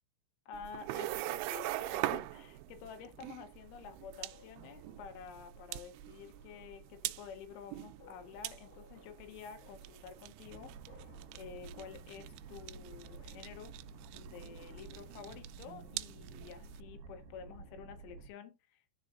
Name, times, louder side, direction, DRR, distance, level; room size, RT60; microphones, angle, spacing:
voice 1, 0.5-11.0 11.3-13.8 14.1-18.8, left 7 dB, 80° left, 3.5 m, -50 dB
sound 1, 0.5-16.8, right 15 dB, 85° right, 3.0 m, -43 dB
sound 2, 2.8-17.7, left 5 dB, 50° left, 2.1 m, -67 dB
sound 3, 10.4-18.3, right 3 dB, 60° right, 2.8 m, -52 dB
13.0 x 4.9 x 2.5 m
omnidirectional pair, 5.5 m